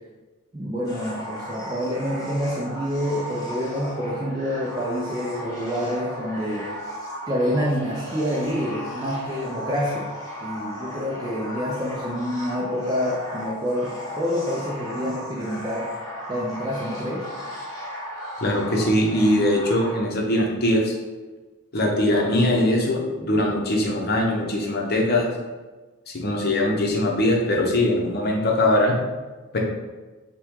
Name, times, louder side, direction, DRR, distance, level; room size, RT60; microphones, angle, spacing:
voice 1, 0.5-6.7 7.3-10.1 10.4-15.9 16.3-17.2, equal, 20° right, -5 dB, 0.5 m, -27 dB
sound 1, 0.8-20.0, equal, 15° left, 0.8 m, -36 dB
voice 2, 18.4-20.9 21.7-25.3 26.1-28.9 29.5-29.6, left 1 dB, 45° left, 0 dB, 0.7 m, -21 dB
5.6 x 2.3 x 3.7 m, 1.3 s
head